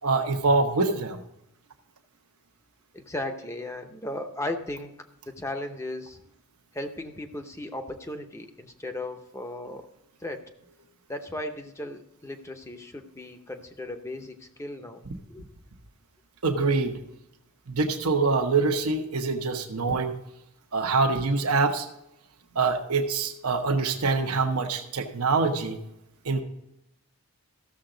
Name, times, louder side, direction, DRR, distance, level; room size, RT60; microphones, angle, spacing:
voice 1, 0.0-1.2 16.4-17.0 17.7-20.2 20.7-21.9 22.5-25.8 26.2-26.4, right 4 dB, 80° right, 4 dB, 0.9 m, -25 dB
voice 2, 2.9-4.9 5.3-6.2 6.7-9.9 10.2-10.4 11.1-15.0 15.3-15.4, left 1 dB, 15° left, 6 dB, 0.7 m, -36 dB
14.0 x 6.9 x 3.8 m, 0.84 s
head